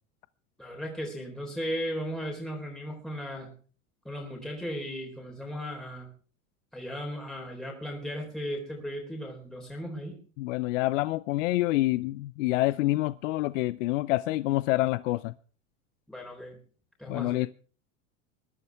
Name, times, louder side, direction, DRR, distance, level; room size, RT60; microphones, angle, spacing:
voice 1, 0.6-3.5 4.0-6.1 6.7-10.2 16.1-16.6 17.0-17.4, equal, ahead, 3.9 m, -36 dB
voice 2, 10.4-15.3 17.1-17.5, left 18 dB, 75° left, 0.6 m, -27 dB
21.0 x 12.0 x 3.5 m
hypercardioid pair, 95°, 38 cm